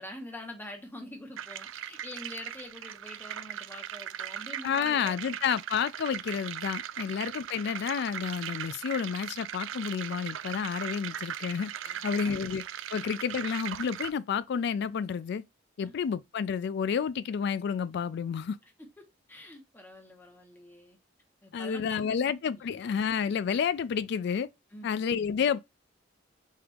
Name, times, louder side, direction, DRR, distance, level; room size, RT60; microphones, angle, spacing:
voice 1, 0.0-5.4 11.8-12.4 12.9-13.0 15.8-15.9 18.8-21.0 21.4-22.3 24.7-25.1, left 1 dB, 10° left, 0.9 m, -46 dB
sound 1, 1.4-14.1, right 10 dB, 80° right, 0.4 m, -39 dB
voice 2, 4.6-11.7 12.0-12.6 12.9-15.4 15.8-18.6 21.5-24.5 24.8-25.6, left 7 dB, 60° left, 0.3 m, -30 dB
4.5 x 2.4 x 3.4 m
head